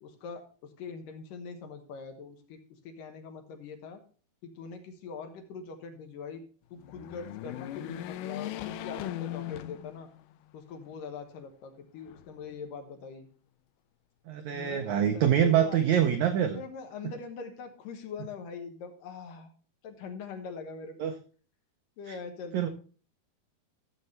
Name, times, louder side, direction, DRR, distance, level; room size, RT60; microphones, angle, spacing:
voice 1, 0.0-4.0 4.4-6.4 6.7-10.1 10.5-13.3 14.5-15.8 16.5-19.5 19.8-21.1 22.0-22.7, left 5 dB, 70° left, 5 dB, 2.7 m, -42 dB
sound 1, 6.8-10.4 10.9-11.0 12.0-12.8, left 13 dB, 85° left, 1.9 m, -39 dB
voice 2, 14.3-16.6 21.0-21.1 22.1-22.2 22.5-22.7, right 9 dB, 85° right, 7 dB, 1.6 m, -25 dB
14.5 x 6.9 x 3.2 m, 0.39 s
omnidirectional pair, 4.3 m